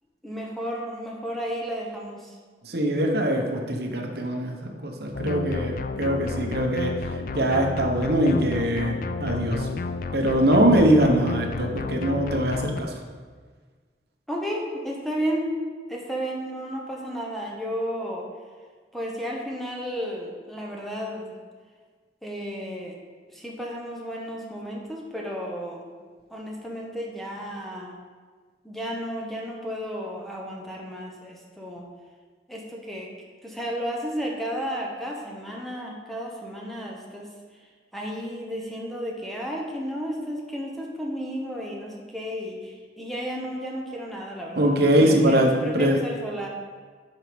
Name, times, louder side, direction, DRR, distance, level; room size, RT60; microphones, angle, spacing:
voice 1, 0.2-2.3 14.3-15.5 15.9-18.2 18.9-21.3 22.2-23.0 23.3-25.9 26.3-28.0 28.6-31.8 32.5-33.1 33.4-37.3 37.9-46.5, equal, ahead, -2 dB, 1.0 m, -33 dB
voice 2, 2.6-6.9 7.3-9.7 10.1-12.9 44.6-46.0, right 1 dB, 60° right, 2 dB, 1.0 m, -22 dB
sound 1, 5.1-12.8, left 4 dB, 50° left, 0.4 m, -31 dB
8.0 x 5.7 x 5.1 m, 1.5 s
head